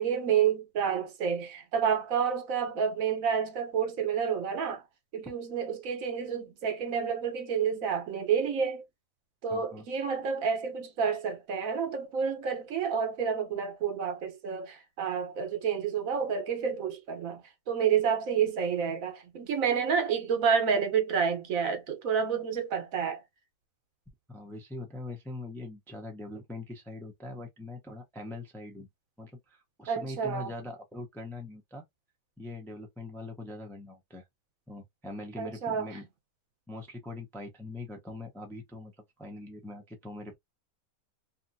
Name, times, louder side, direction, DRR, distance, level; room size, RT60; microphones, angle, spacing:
voice 1, 0.0-4.8 5.1-8.8 9.4-23.2 29.9-30.5 35.4-35.9, right 7 dB, 70° right, 1.3 m, -29 dB
voice 2, 9.5-9.8 24.3-28.9 29.2-31.9 32.4-34.2 34.7-36.0 36.7-38.9 39.2-40.3, left 2 dB, 5° left, 0.4 m, -42 dB
2.8 x 2.5 x 2.6 m
omnidirectional pair, 1.5 m